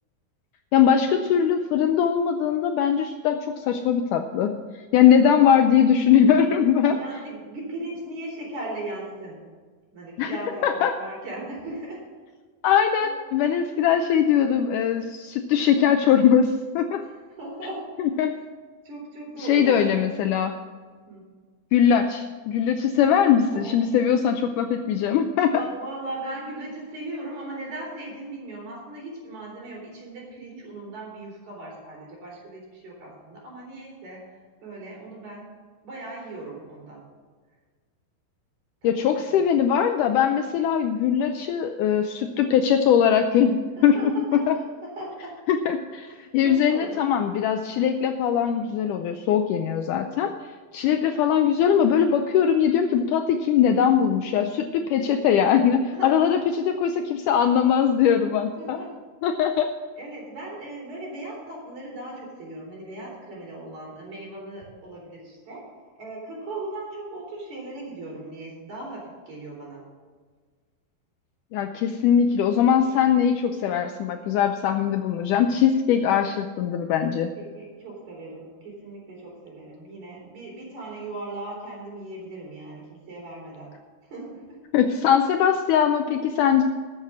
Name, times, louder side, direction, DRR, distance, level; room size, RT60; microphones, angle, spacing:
voice 1, 0.7-7.0 10.2-10.4 10.6-10.9 12.6-17.0 18.0-18.3 19.4-20.5 21.7-25.5 38.8-44.6 45.5-50.3 50.7-58.8 59.2-59.7 71.5-77.3 84.7-86.6, left 8 dB, 90° left, 6 dB, 1.8 m, -21 dB
voice 2, 6.8-9.4 9.9-12.0 12.9-13.1 17.1-18.3 18.8-20.2 21.1-21.3 23.5-24.1 24.8-25.0 25.5-34.3 34.6-35.5 35.8-37.0 38.8-38.9 39.3-39.5 43.9-45.3 46.1-47.0 55.9-56.4 58.6-58.9 60.0-65.6 66.0-69.8 77.1-83.8 84.0-84.6, right 2 dB, 50° right, -3 dB, 5.2 m, -38 dB
13.0 x 8.2 x 6.2 m, 1.5 s
omnidirectional pair, 4.3 m